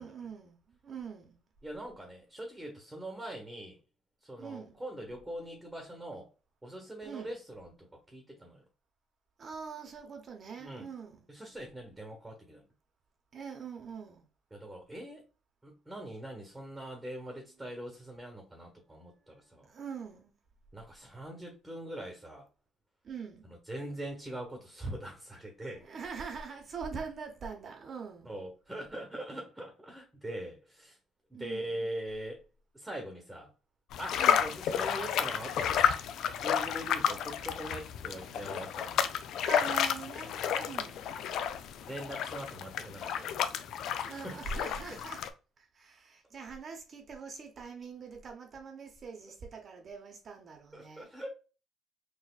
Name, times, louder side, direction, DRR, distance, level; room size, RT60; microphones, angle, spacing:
voice 1, 0.0-1.4 4.4-4.8 7.0-7.3 9.4-11.2 13.3-14.3 19.6-20.3 23.0-23.6 25.7-28.3 31.3-31.8 34.2-34.5 39.4-41.1 43.9-45.2 45.6-51.1, right 5 dB, 45° right, 0.8 m, -43 dB
voice 2, 1.6-3.8 4.2-6.3 6.6-8.6 10.6-10.9 11.3-12.7 14.5-15.2 15.6-19.7 20.7-22.5 23.4-25.9 28.2-31.0 31.3-32.4 32.7-33.5 34.0-36.0 36.4-39.0 41.8-43.5 43.8-44.4 50.7-51.3, right 1 dB, 10° right, 1.1 m, -42 dB
sound 1, 33.9-45.3, left 8 dB, 70° left, 0.3 m, -31 dB
4.1 x 2.4 x 2.3 m
supercardioid pair, 80°, 0 cm